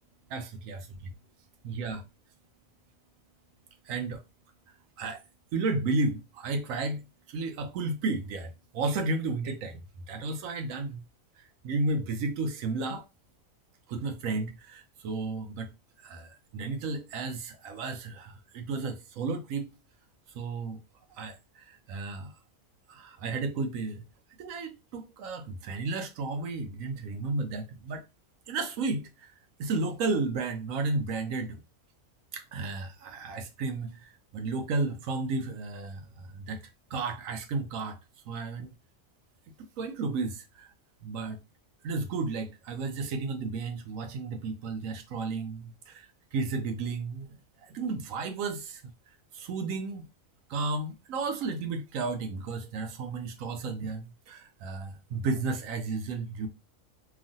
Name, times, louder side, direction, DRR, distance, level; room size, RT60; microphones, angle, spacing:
voice 1, 0.3-1.1 1.6-2.0 3.8-4.2 5.0-5.2 5.5-9.8 10.1-11.0 11.4-13.0 13.9-15.7 16.0-19.7 20.3-20.8 21.1-22.3 22.9-24.0 24.4-28.0 28.5-29.3 29.6-31.6 32.3-36.6 36.9-38.0 38.3-38.7 39.8-40.7 41.0-41.4 41.8-48.9 49.3-50.1 50.5-56.5, right 3 dB, 80° right, 1.0 m, -33 dB
3.0 x 2.4 x 2.6 m
omnidirectional pair, 1.4 m